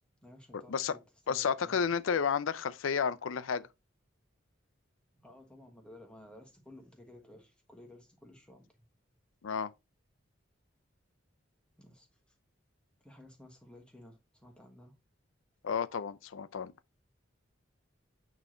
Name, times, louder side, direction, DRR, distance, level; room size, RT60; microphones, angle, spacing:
voice 1, 0.2-1.0 1.3-1.9 5.1-8.7 11.8-12.3 13.0-14.9, left 1 dB, 5° left, 1.2 m, -55 dB
voice 2, 1.3-3.7 9.4-9.7 15.6-16.7, left 6 dB, 85° left, 0.5 m, -31 dB
8.3 x 3.1 x 3.7 m
head